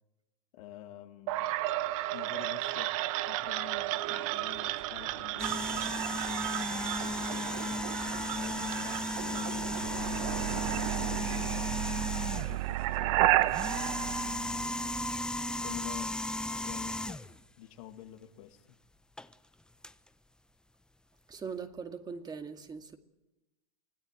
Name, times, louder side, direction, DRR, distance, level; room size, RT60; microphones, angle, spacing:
voice 1, 0.5-1.6 2.1-3.0 3.3-8.0 8.4-11.7 12.3-14.8 15.4-16.2 16.6-17.3 17.6-18.8, left 12 dB, 70° left, 2.3 m, -49 dB
sound 1, 1.3-15.1, right 16 dB, 65° right, 1.1 m, -33 dB
sound 2, 5.4-12.7 13.4-17.4 19.2-19.3 19.8-19.9, left 2 dB, 5° left, 0.9 m, -35 dB
voice 2, 21.3-23.0, right 5 dB, 20° right, 2.2 m, -41 dB
25.0 x 17.0 x 9.1 m
hypercardioid pair, 115°, 19 cm